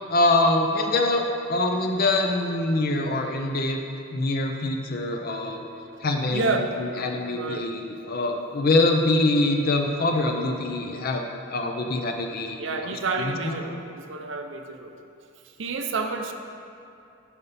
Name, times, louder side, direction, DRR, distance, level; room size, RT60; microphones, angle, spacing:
voice 1, 0.1-3.8 4.1-5.6 6.0-13.6, left 2 dB, 45° left, 3 dB, 0.5 m, -24 dB
voice 2, 6.3-7.7 12.6-14.9 15.6-16.3, right 3 dB, 55° right, 5 dB, 0.6 m, -29 dB
11.0 x 5.3 x 4.1 m, 2.6 s
head